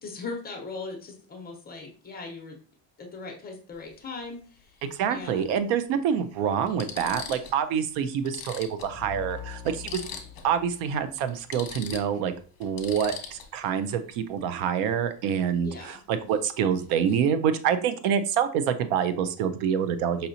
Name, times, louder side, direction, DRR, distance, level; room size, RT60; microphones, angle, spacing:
voice 1, 0.0-2.6 3.0-4.8 5.1-5.6 6.7-6.9 15.6-16.0, left 3 dB, 20° left, 2 dB, 0.7 m, -39 dB
sound 1, 3.7-3.9 5.4-5.5 6.2-6.3 6.7-7.6 7.9-8.0 8.2-10.5 10.8-11.0 11.3-13.7 16.3-16.5 16.8-17.3, left 7 dB, 45° left, 0.9 m, -41 dB
voice 2, 4.9-10.0 10.4-12.3 12.6-20.3, right 8 dB, 80° right, 11 dB, 0.6 m, -26 dB
sound 2, 8.8-11.6, left 9 dB, 20° right, 1.1 m, -43 dB
5.3 x 2.8 x 2.6 m, 0.41 s
cardioid pair, 160°, 48 cm